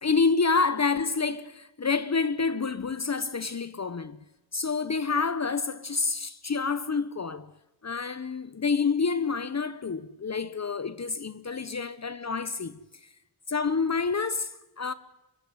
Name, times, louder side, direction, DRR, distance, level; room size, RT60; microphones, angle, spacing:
voice 1, 0.0-4.2 4.5-7.5 7.8-12.8 13.5-14.9, left 4 dB, 40° left, 0.8 m, -28 dB
25.0 x 14.0 x 9.7 m
wide cardioid pair, 115°, 41 cm